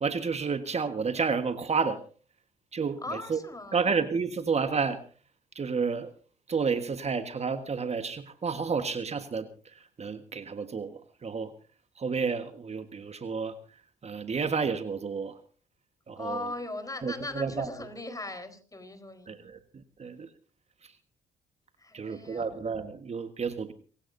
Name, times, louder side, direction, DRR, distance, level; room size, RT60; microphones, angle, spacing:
voice 1, 0.0-2.0 2.7-3.4 3.7-5.0 5.5-6.1 6.5-11.5 12.0-13.6 14.0-15.4 16.1-16.5 17.0-17.7 19.3-20.3 20.8-20.9 21.9-23.7, right 5 dB, 40° right, 9 dB, 1.5 m, -31 dB
voice 2, 3.0-3.9 16.2-19.3 21.8-22.5, left 2 dB, 20° left, 8 dB, 4.4 m, -39 dB
27.5 x 16.0 x 2.7 m, 0.39 s
supercardioid pair, 55°, 16 cm